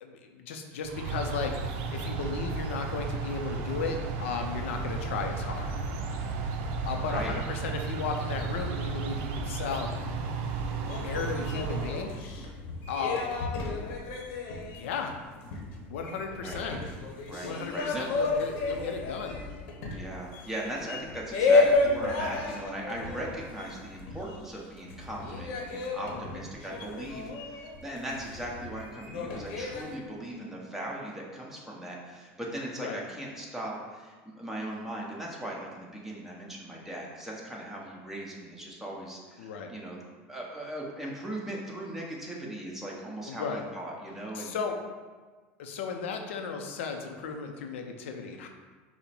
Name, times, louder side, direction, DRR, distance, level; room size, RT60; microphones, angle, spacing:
voice 1, 0.0-1.6 1.9-5.7 6.8-9.9 11.0-12.1 12.9-13.3 14.7-15.2 15.9-16.8 17.4-19.4 26.1-26.4 32.8-33.0 39.4-39.7 43.3-43.6 44.3-44.8 45.6-48.5, left 5 dB, 90° left, 4 dB, 0.5 m, -35 dB
sound 1, 0.8-12.2, right 4 dB, 70° right, 0.5 m, -33 dB
sound 2, 10.8-24.6 24.9-30.0, left 3 dB, 70° left, 0.9 m, -32 dB
voice 2, 17.3-18.1 19.9-40.0 40.3-44.5, right 1 dB, 5° right, -4 dB, 1.1 m, -38 dB
5.3 x 2.1 x 4.4 m, 1.4 s
supercardioid pair, 105°, 7 cm